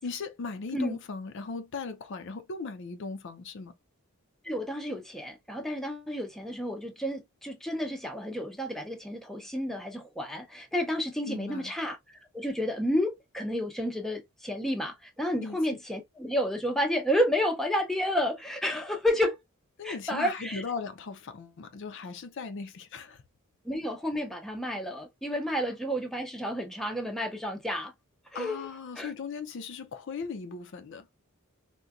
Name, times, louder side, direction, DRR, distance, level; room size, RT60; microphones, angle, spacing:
voice 1, 0.0-3.7 11.3-11.7 15.4-15.8 19.8-23.2 28.3-31.1, left 4 dB, 55° left, 0.4 m, -38 dB
voice 2, 4.4-12.0 12.3-19.4 19.8-20.6 23.7-27.9 28.3-28.7 29.0-29.1, equal, ahead, 0.5 m, -31 dB
3.8 x 2.2 x 2.3 m
head